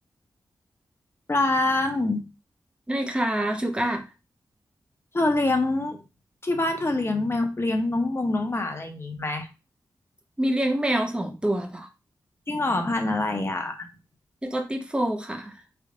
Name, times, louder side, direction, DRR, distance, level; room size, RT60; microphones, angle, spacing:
voice 1, 1.3-2.3 5.1-6.0 6.4-9.5 12.5-13.9, left 2 dB, 30° left, 1.0 m, -25 dB
voice 2, 2.9-4.0 10.4-11.9 14.4-15.6, right 1 dB, 10° right, 0.8 m, -26 dB
3.4 x 2.5 x 3.8 m
cardioid pair, 50°, 8 cm